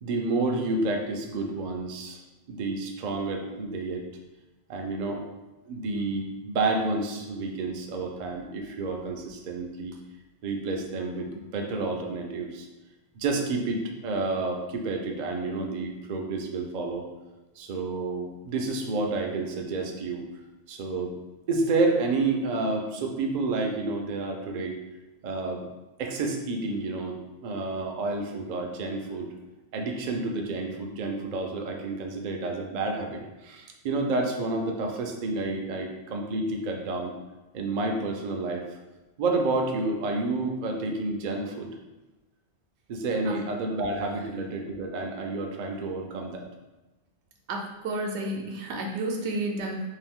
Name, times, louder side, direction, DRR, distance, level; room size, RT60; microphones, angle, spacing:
voice 1, 0.0-2.2 2.5-4.0 4.7-5.2 5.7-10.0 10.4-12.7 13.2-17.1 17.6-20.2 20.7-21.1 21.5-24.8 25.2-25.6 26.0-29.3 29.7-37.1 37.5-38.7 39.2-41.7 42.9-46.5, right 3 dB, 55° right, 2 dB, 0.5 m, -30 dB
voice 2, 47.5-49.9, right 2 dB, 85° right, 1 dB, 0.9 m, -31 dB
2.7 x 2.5 x 3.5 m, 1.1 s
omnidirectional pair, 1.1 m